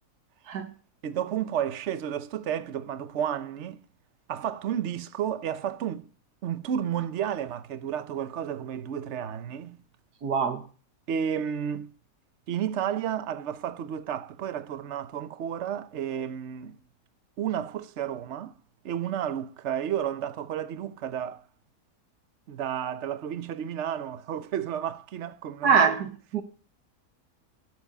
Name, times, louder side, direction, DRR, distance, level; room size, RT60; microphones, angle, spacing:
voice 1, 1.0-3.8 4.3-6.1 6.4-9.8 11.1-11.9 12.5-16.8 17.4-18.5 18.8-21.4 22.5-25.8, right 9 dB, 55° right, 1.0 m, -32 dB
voice 2, 10.2-10.6 25.6-26.4, right 6 dB, 90° right, 1.8 m, -24 dB
16.0 x 7.4 x 6.7 m
omnidirectional pair, 1.6 m